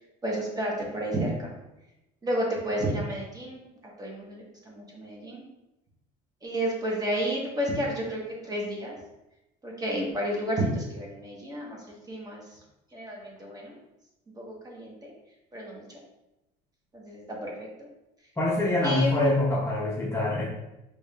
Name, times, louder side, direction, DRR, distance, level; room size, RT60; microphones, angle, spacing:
voice 1, 0.2-1.5 2.2-3.6 4.0-5.4 6.4-8.9 9.6-12.6 12.9-13.8 14.3-15.1 15.5-16.0 16.9-17.9 18.8-19.5, right 1 dB, 20° right, -2 dB, 1.1 m, -31 dB
voice 2, 18.4-20.5, left 1 dB, 15° left, -4 dB, 0.7 m, -25 dB
4.9 x 3.1 x 2.4 m, 0.93 s
supercardioid pair, 110°, 19 cm